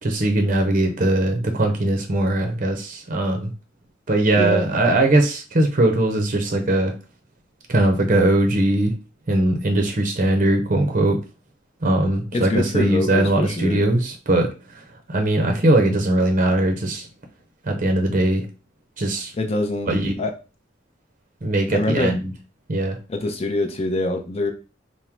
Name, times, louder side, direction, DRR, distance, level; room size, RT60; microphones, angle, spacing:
voice 1, 0.0-3.5 4.1-6.9 7.7-8.9 9.3-11.2 11.8-14.5 15.1-17.1 17.6-18.5 19.0-19.3 19.9-20.1 21.4-22.3 22.7-23.0, right 1 dB, 40° right, 3 dB, 0.7 m, -20 dB
voice 2, 12.3-13.9 19.4-19.9 20.2-20.3 21.7-22.2 23.1-24.5, left 2 dB, 35° left, 4 dB, 0.6 m, -24 dB
3.6 x 2.1 x 4.4 m, 0.32 s
head